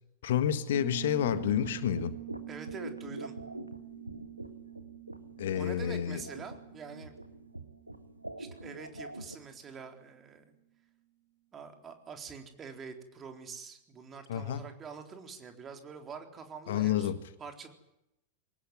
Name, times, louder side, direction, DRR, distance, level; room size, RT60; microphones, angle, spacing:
voice 1, 0.2-2.2 5.4-6.2 14.3-14.7 16.7-17.2, left 10 dB, 60° left, 13 dB, 1.5 m, -29 dB
Piano, 0.7-9.2, right 18 dB, 50° right, 2.0 m, -47 dB
sound 1, 1.2-9.4, right 1 dB, 85° right, 1.6 m, -44 dB
voice 2, 2.5-3.3 5.5-7.1 8.4-10.6 11.5-17.1 17.4-17.7, right 5 dB, 25° right, 5 dB, 3.9 m, -45 dB
22.5 x 19.0 x 9.5 m, 0.85 s
figure-of-eight pair, 90°, 0 cm